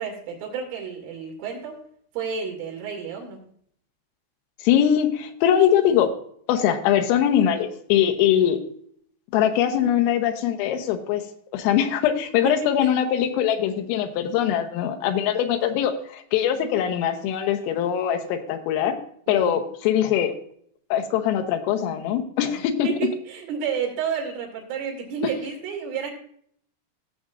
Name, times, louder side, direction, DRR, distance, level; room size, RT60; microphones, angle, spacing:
voice 1, 0.0-1.8 2.1-3.4 12.4-12.5 12.8-12.9 19.3-19.6 22.8-26.1, right 7 dB, 75° right, 0 dB, 4.9 m, -30 dB
voice 2, 4.6-6.1 6.5-8.6 9.3-11.3 11.5-19.0 19.3-20.4 20.9-22.9, left 10 dB, 90° left, 7 dB, 3.6 m, -22 dB
17.0 x 7.5 x 2.5 m, 0.63 s
omnidirectional pair, 5.8 m